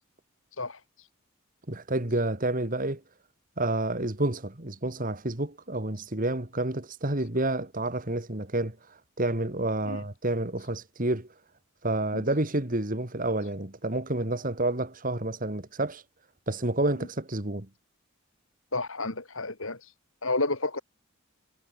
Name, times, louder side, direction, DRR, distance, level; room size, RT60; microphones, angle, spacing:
voice 1, 1.7-3.0 3.6-8.8 9.2-11.3 11.8-16.0 16.5-17.7, right 2 dB, 40° right, 2.2 m, -29 dB
voice 2, 18.7-19.8 20.2-20.8, left 2 dB, 70° left, 4.0 m, -30 dB
head